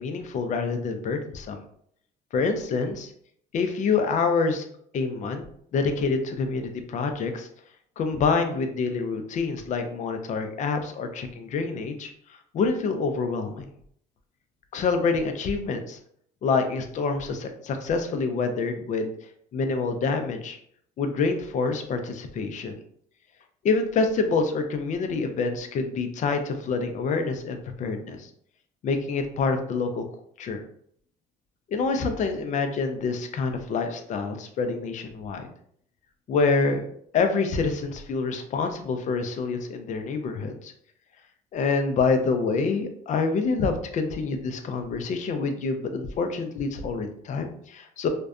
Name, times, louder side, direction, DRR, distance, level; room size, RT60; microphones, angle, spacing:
voice 1, 0.0-1.6 2.3-3.1 3.5-4.7 4.9-5.4 5.7-7.5 8.0-12.1 12.5-13.7 14.7-16.0 16.4-19.1 19.5-20.6 21.0-22.7 23.6-28.3 28.8-30.0 30.4-30.6 31.7-35.5 36.3-36.8 37.1-40.7 41.5-48.1, left 4 dB, 45° left, 6 dB, 0.4 m, -26 dB
2.5 x 2.1 x 2.3 m, 0.65 s
cardioid pair, 110°, 17 cm